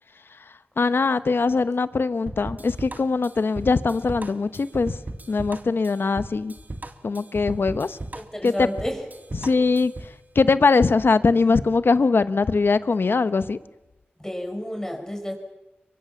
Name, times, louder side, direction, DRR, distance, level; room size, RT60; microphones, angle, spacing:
voice 1, 0.8-5.0 5.3-6.5 7.0-8.0 8.4-8.5 9.4-9.9 10.3-13.6, left 4 dB, 70° left, 13 dB, 1.0 m, -21 dB
sound 1, 2.3-10.2, right 2 dB, 45° right, 2.0 m, -37 dB
voice 2, 8.1-9.1 14.2-15.3, equal, 15° left, 2 dB, 6.1 m, -31 dB
24.0 x 22.5 x 7.2 m, 1.0 s
cardioid pair, 45°, 4 cm